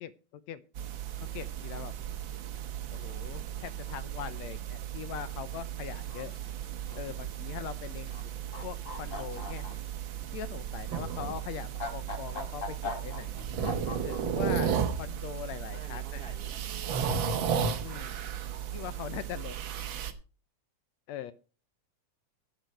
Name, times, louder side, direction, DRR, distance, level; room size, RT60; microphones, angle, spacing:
voice 1, 0.0-0.6 1.2-1.9 2.9-6.3 6.9-8.1 8.6-9.7 10.3-13.3 14.0-16.2 17.8-18.2 18.7-19.6 21.1-21.3, left 10 dB, 75° left, 14 dB, 1.7 m, -41 dB
sound 1, 0.7-20.1, right 8 dB, 65° right, 1.2 m, -35 dB
sound 2, 6.1-6.4 6.8-7.2 8.0-8.2 8.5-9.9 10.8-10.9 11.5-14.4 14.7-15.3 16.2-16.5, left 3 dB, 30° left, 1.8 m, -40 dB
voice 2, 15.7-17.2, right 4 dB, 90° right, 6 dB, 0.8 m, -50 dB
12.5 x 9.1 x 5.3 m, 0.35 s
omnidirectional pair, 3.6 m